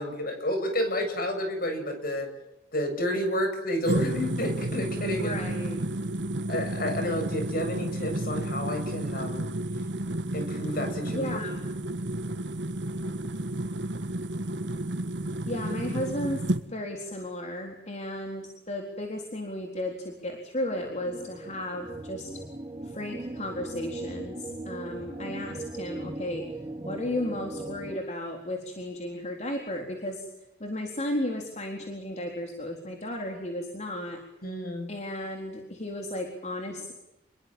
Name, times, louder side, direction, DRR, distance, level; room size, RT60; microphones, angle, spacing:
voice 1, 0.0-2.3 2.7-5.4 6.5-9.5 10.3-11.3 34.4-34.9, left 1 dB, 55° left, 7 dB, 7.5 m, -30 dB
sound 1, 3.8-16.6, right 1 dB, 80° right, 1.4 m, -31 dB
voice 2, 5.2-5.8 11.1-11.5 15.5-22.3 22.8-26.5 26.8-30.3 30.6-34.2 34.9-36.9, left 1 dB, 40° left, 2 dB, 4.0 m, -34 dB
sound 2, 20.6-28.0, right 2 dB, 25° right, 1.9 m, -39 dB
28.0 x 22.0 x 7.5 m, 0.90 s
head